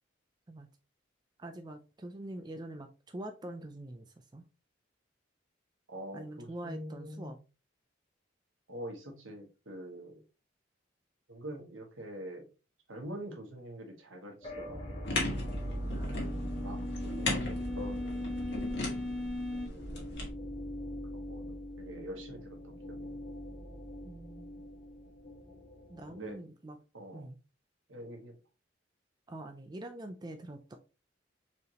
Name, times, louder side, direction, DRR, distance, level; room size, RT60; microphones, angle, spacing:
voice 1, 1.4-4.4 6.1-7.4 15.9-16.8 24.0-24.7 25.9-26.8 27.1-27.4 29.3-30.8, right 1 dB, 20° right, 0.4 m, -45 dB
voice 2, 5.9-7.3 8.7-10.2 11.3-12.5 12.9-15.0 15.3-15.8 16.6-19.2 19.5-20.3 21.1-23.0 26.1-26.4 26.9-27.3 27.9-28.3, equal, 85° right, 1.4 m, -45 dB
sound 1, 14.4-26.3, equal, 30° left, 1.1 m, -42 dB
sound 2, 15.0-20.3, left 2 dB, 60° left, 1.7 m, -38 dB
sound 3, 15.3-19.7, left 2 dB, 5° left, 0.8 m, -39 dB
4.5 x 3.4 x 3.0 m
head